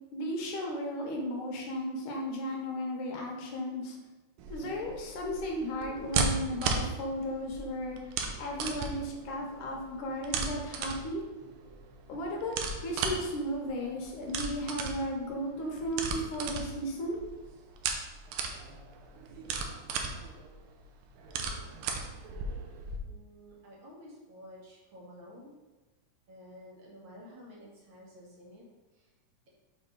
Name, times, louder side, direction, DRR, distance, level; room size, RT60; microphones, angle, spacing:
voice 1, 0.1-4.0 4.5-11.2 12.1-12.6 12.8-17.2, equal, 70° left, -1 dB, 2.4 m, -35 dB
sound 1, 4.4-23.0, right 4 dB, 80° right, 2.4 m, -36 dB
voice 2, 23.0-25.5 26.3-28.6 28.9-29.1, equal, 45° right, -4 dB, 1.8 m, -51 dB
6.7 x 3.6 x 5.4 m, 1.1 s
omnidirectional pair, 4.0 m